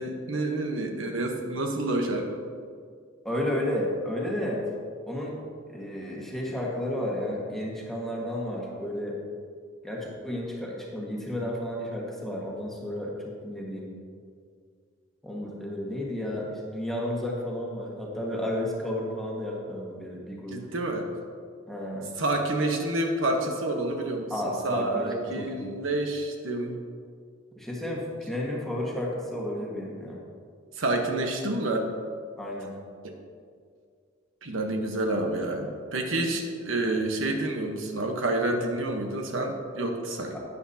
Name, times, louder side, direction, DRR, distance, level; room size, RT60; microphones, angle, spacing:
voice 1, 0.0-2.4 20.5-21.1 22.2-26.8 30.8-31.9 33.0-33.1 34.4-40.4, right 2 dB, 80° right, 3 dB, 1.1 m, -28 dB
voice 2, 3.2-4.6 5.1-5.4 5.7-9.2 9.8-13.9 15.2-20.6 21.7-22.1 24.3-25.7 27.6-30.2 32.4-32.7 40.3-40.4, left 1 dB, ahead, -4 dB, 1.5 m, -32 dB
12.0 x 9.4 x 2.8 m, 2.1 s
head